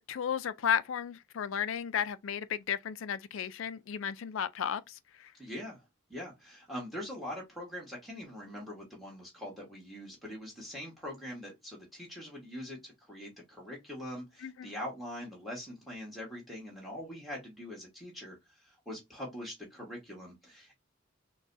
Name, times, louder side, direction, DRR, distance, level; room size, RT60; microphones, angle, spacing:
voice 1, 0.0-5.3 14.4-14.7, left 8 dB, 70° left, 0.4 m, -34 dB
voice 2, 5.4-5.8 6.1-20.8, left 1 dB, ahead, 1.4 m, -43 dB
6.0 x 2.2 x 2.6 m
head